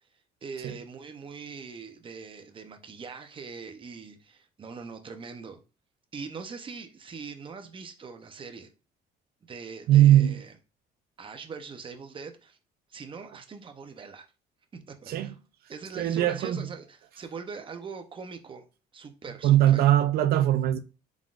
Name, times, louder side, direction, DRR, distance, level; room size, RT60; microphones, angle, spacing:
voice 1, 0.4-5.6 6.1-8.7 9.4-10.5 11.2-12.6 12.9-14.3 14.7-15.4 15.7-18.7 18.9-19.8, right 5 dB, 30° right, 0.7 m, -42 dB
voice 2, 9.9-10.4 15.1-15.3 16.0-16.6 19.4-20.8, right 12 dB, 65° right, 0.6 m, -20 dB
3.8 x 3.6 x 2.5 m
cardioid pair, 110°, 17 cm